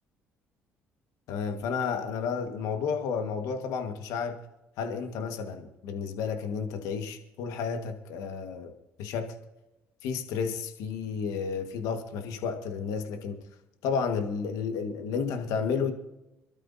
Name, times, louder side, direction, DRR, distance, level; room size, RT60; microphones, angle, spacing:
voice 1, 1.3-4.4 4.8-8.7 9.0-9.3 10.0-13.4 13.8-15.9, left 6 dB, 75° left, 1.7 m, -31 dB
26.5 x 12.5 x 2.8 m
hypercardioid pair, 60°, 6 cm